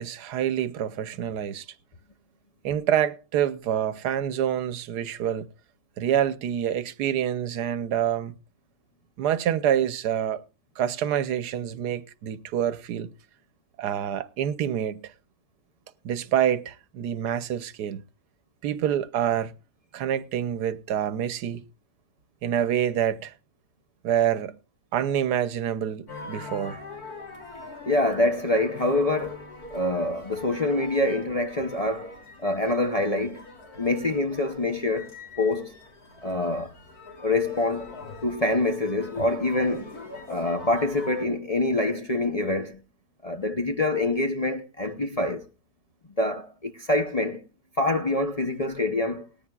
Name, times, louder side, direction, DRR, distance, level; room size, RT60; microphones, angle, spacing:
voice 1, 0.0-1.6 2.6-5.5 6.0-8.3 9.2-10.4 10.8-13.1 13.8-15.1 16.0-18.0 18.6-19.5 19.9-21.6 22.4-23.3 24.0-24.6 24.9-26.8, right 10 dB, 85° right, 1.4 m, -27 dB
sound 1, 26.1-41.3, left 3 dB, 65° left, 3.5 m, -42 dB
voice 2, 27.9-29.4 29.7-32.1 32.4-33.4 33.8-35.7 36.2-36.7 37.2-37.9 38.2-39.9 40.3-42.8 43.2-45.4 46.2-47.4 47.8-49.2, left 2 dB, 35° left, 0.6 m, -25 dB
18.5 x 14.0 x 2.3 m
omnidirectional pair, 1.7 m